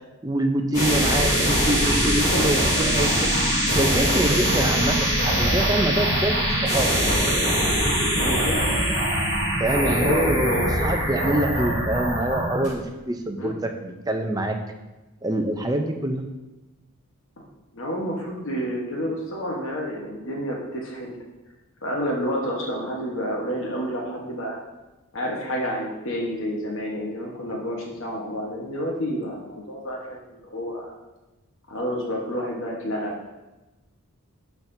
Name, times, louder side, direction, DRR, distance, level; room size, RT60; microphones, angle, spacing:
voice 1, 0.2-6.9 9.6-10.5 10.8-13.5 13.8-14.6 15.2-16.3, right 1 dB, 15° right, 4 dB, 0.5 m, -25 dB
sound 1, 0.7-12.7, equal, 30° left, 2.9 m, -22 dB
voice 2, 2.1-2.4 2.8-3.1 8.2-8.6 9.8-10.8 13.4-13.5 17.7-21.1 21.8-24.6 25.1-30.9 31.7-33.1, equal, 60° left, -1 dB, 1.2 m, -29 dB
11.5 x 5.9 x 2.7 m, 1.1 s
head